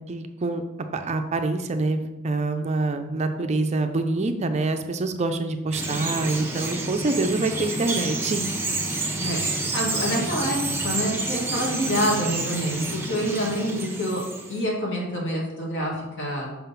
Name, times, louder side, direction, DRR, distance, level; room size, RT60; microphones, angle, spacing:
voice 1, 0.1-0.6 0.9-8.4, right 3 dB, 30° right, 7 dB, 0.4 m, -26 dB
Bird vocalization bird call bird song, 5.7-14.6, right 2 dB, 10° right, 0.9 m, -29 dB
voice 2, 9.7-14.2 14.5-16.5, equal, 60° left, -2 dB, 1.9 m, -27 dB
5.7 x 3.8 x 5.6 m, 1.1 s
head